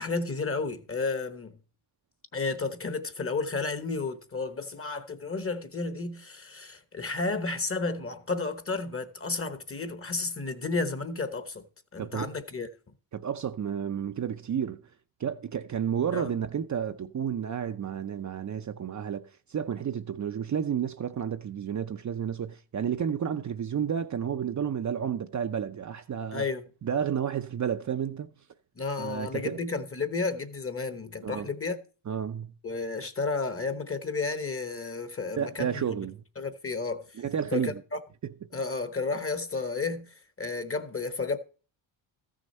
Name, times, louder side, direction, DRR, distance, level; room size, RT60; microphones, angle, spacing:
voice 1, 0.0-1.6 2.3-11.7 11.9-12.7 16.1-16.3 26.3-26.6 28.8-31.8 32.6-36.0 36.4-37.1 37.5-38.0 38.5-41.4, left 3 dB, 25° left, 1.2 m, -32 dB
voice 2, 12.0-12.3 13.1-14.8 15.2-26.4 26.8-28.3 29.0-29.6 31.2-31.5 32.1-32.5 35.4-36.2 37.2-37.8 38.2-38.3, right 8 dB, 35° right, 0.6 m, -31 dB
13.5 x 6.4 x 4.3 m
cardioid pair, 80°, 48 cm